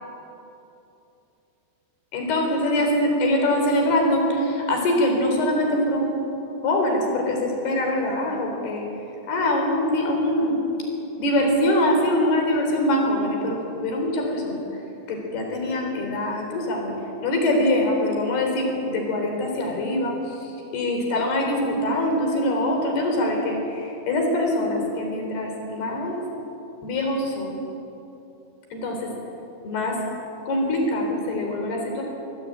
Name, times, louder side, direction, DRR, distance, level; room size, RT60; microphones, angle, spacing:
voice 1, 2.1-6.1 6.6-8.8 9.3-10.6 11.2-14.7 15.1-16.9 17.2-26.2 26.8-27.6 28.7-29.0 29.6-30.0 30.4-32.0, left 1 dB, 85° left, 2 dB, 6.0 m, -23 dB
24.5 x 17.5 x 8.8 m, 2.9 s
omnidirectional pair, 4.5 m